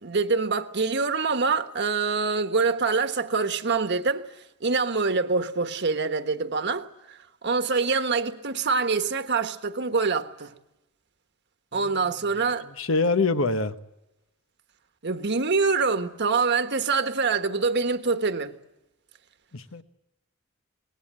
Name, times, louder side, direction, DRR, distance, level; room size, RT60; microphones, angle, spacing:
voice 1, 0.0-4.2 4.6-10.5 11.7-12.7 15.0-18.5, right 4 dB, 55° right, 1.4 m, -25 dB
voice 2, 12.8-13.8 19.5-19.8, left 3 dB, 75° left, 1.1 m, -25 dB
24.0 x 19.5 x 8.8 m
head